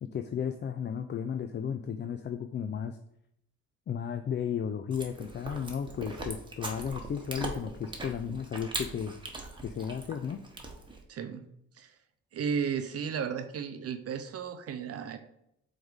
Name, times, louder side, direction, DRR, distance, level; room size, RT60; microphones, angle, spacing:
voice 1, 0.0-3.0 3.9-9.1 9.6-10.4, left 7 dB, 35° left, 7 dB, 0.4 m, -34 dB
Chewing mastication, 4.9-11.0, right 2 dB, 15° right, 1.2 m, -40 dB
voice 2, 11.1-11.4 11.8-11.9 12.3-15.2, right 6 dB, 50° right, 8 dB, 0.7 m, -34 dB
4.5 x 4.1 x 5.1 m, 0.76 s
cardioid pair, 90°, 30 cm